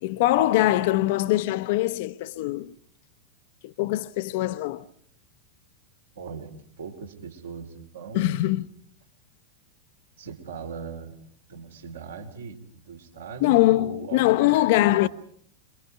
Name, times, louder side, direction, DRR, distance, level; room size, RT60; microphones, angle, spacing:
voice 1, 0.0-2.7 3.6-4.8 8.1-8.7 13.4-15.1, left 16 dB, 50° left, 0.9 m, -22 dB
voice 2, 6.1-8.3 10.2-11.2 11.5-15.0, right 6 dB, 65° right, 4.3 m, -40 dB
27.5 x 23.5 x 4.9 m
figure-of-eight pair, 90°, 0 cm